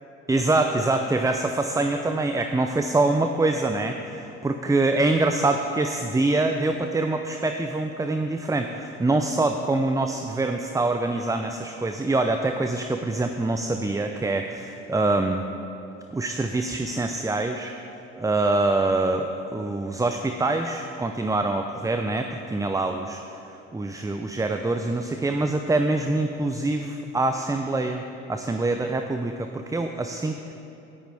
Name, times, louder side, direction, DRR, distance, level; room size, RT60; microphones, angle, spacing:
voice 1, 0.3-15.4 16.1-17.7 18.2-23.4 23.7-28.0 28.3-30.5, right 2 dB, 10° right, 6 dB, 0.6 m, -25 dB
18.5 x 9.0 x 3.5 m, 2.8 s
hypercardioid pair, 55°, 34 cm